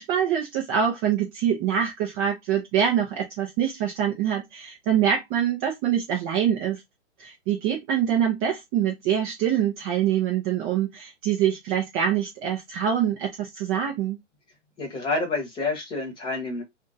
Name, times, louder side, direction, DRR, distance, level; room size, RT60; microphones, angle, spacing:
voice 1, 0.0-6.8 7.2-14.2, right 9 dB, 20° right, 0.6 m, -25 dB
voice 2, 14.8-16.6, left 3 dB, 15° left, 1.2 m, -28 dB
2.6 x 2.4 x 4.0 m
hypercardioid pair, 140°, 36 cm